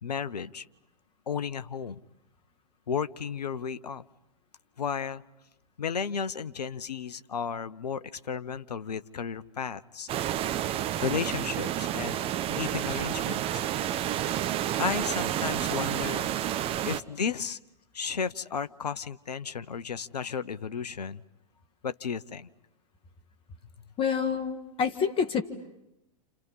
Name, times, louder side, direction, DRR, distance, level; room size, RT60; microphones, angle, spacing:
voice 1, 0.0-0.6 1.3-2.0 2.9-4.0 4.8-5.2 5.8-10.1 11.0-12.2 12.5-13.6 14.8-16.3 16.9-17.6 17.9-21.2 21.8-22.5, left 6 dB, 80° left, 14 dB, 0.9 m, -33 dB
sound 1, 10.1-17.0, right 11 dB, 30° right, 0.9 m, -30 dB
voice 2, 24.0-25.4, left 6 dB, 25° left, 6 dB, 1.8 m, -27 dB
29.5 x 29.5 x 5.6 m, 0.88 s
hypercardioid pair, 110°, 20 cm